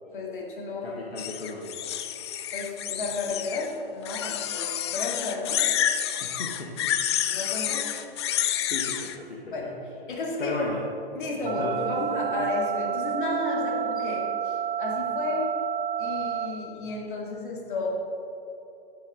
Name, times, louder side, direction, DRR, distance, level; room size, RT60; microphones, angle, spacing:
voice 1, 0.1-1.0 2.5-5.7 7.3-7.9 9.5-9.8 10.1-10.6 11.1-15.5 16.0-17.9, left 3 dB, 55° left, -2 dB, 2.5 m, -32 dB
voice 2, 0.8-1.8 6.2-6.9 8.4-9.6 10.4-10.8 11.4-11.9, left 2 dB, 80° left, -2 dB, 1.4 m, -35 dB
sound 1, 1.2-3.7 4.0-9.2, left 10 dB, 30° left, 0.4 m, -29 dB
sound 2, 11.5-16.5, right 9 dB, 65° right, 0.9 m, -30 dB
11.5 x 10.0 x 3.7 m, 3.0 s
figure-of-eight pair, 115°, 30 cm